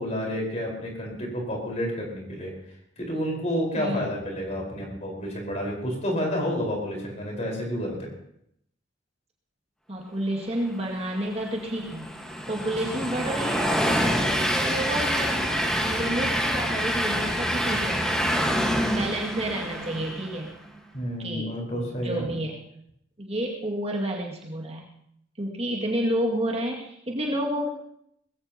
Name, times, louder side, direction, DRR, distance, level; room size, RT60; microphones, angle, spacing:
voice 1, 0.0-2.5 3.0-8.1 20.9-22.3, equal, 35° left, -1 dB, 4.8 m, -30 dB
voice 2, 9.9-12.1 12.5-18.6 18.9-20.5 21.2-22.6 23.2-24.8 25.4-27.7, right 1 dB, 30° right, -2 dB, 2.2 m, -30 dB
Train, 11.1-20.5, equal, 5° left, 1.5 m, -26 dB
21.0 x 15.5 x 3.0 m, 0.74 s
head